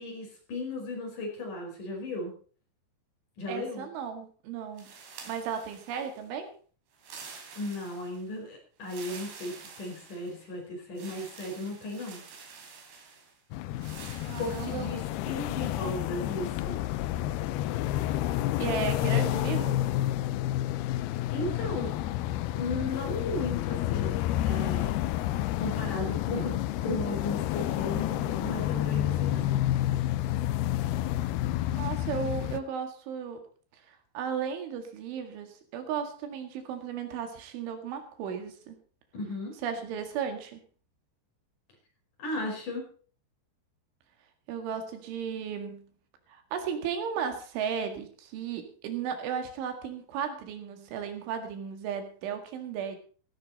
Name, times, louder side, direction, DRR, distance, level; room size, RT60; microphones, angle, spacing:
voice 1, 0.0-2.3 3.4-3.9 7.6-12.2 14.3-16.8 21.3-21.9 22.5-25.1 25.6-29.7 39.2-39.5 42.2-42.9, left 2 dB, 45° left, 1 dB, 6.4 m, -36 dB
voice 2, 3.5-4.9 5.3-6.5 14.2-14.9 18.6-19.8 31.7-33.4 33.9-38.8 39.6-40.6 44.5-45.9 46.3-53.0, right 7 dB, 85° right, 6 dB, 4.5 m, -35 dB
sound 1, 4.8-6.3 6.9-8.3 8.8-10.5 11.0-13.3 13.8-15.0, right 5 dB, 65° right, 5.0 m, -48 dB
sound 2, 13.5-32.6, left 14 dB, 85° left, 2.2 m, -30 dB
16.0 x 13.5 x 4.2 m, 0.41 s
omnidirectional pair, 5.4 m